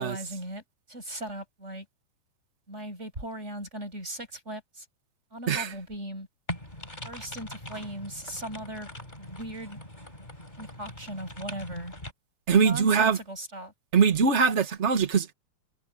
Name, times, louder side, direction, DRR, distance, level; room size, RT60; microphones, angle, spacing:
voice 1, 0.0-1.9 2.7-4.9 5.3-6.3 7.0-8.9 9.2-9.8 10.6-11.9 12.5-13.7, right 1 dB, 20° right, 8.1 m, -38 dB
sound 1, 6.5-12.1, left 1 dB, 15° left, 4.5 m, -42 dB
voice 2, 12.5-13.2 13.9-15.3, right 6 dB, 75° right, 0.6 m, -22 dB
omnidirectional pair, 3.7 m